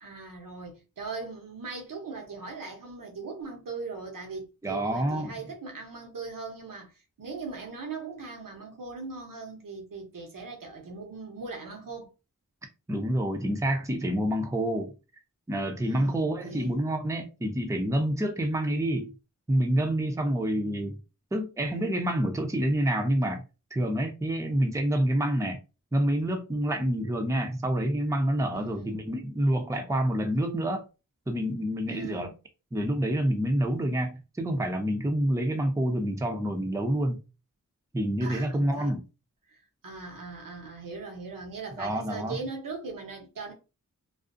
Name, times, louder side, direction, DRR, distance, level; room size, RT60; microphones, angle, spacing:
voice 1, 0.0-6.9 7.2-12.1 15.8-16.8 28.5-29.1 31.9-32.3 38.2-38.9 39.5-43.5, right 4 dB, 85° right, 0.9 m, -40 dB
voice 2, 4.6-5.4 12.9-14.9 15.5-19.1 19.5-21.0 21.3-23.4 23.7-25.6 25.9-30.8 31.3-32.3 32.7-37.2 37.9-39.0 41.8-42.4, right 1 dB, 10° right, 0.5 m, -27 dB
2.4 x 2.0 x 2.5 m
wide cardioid pair, 55°, 32 cm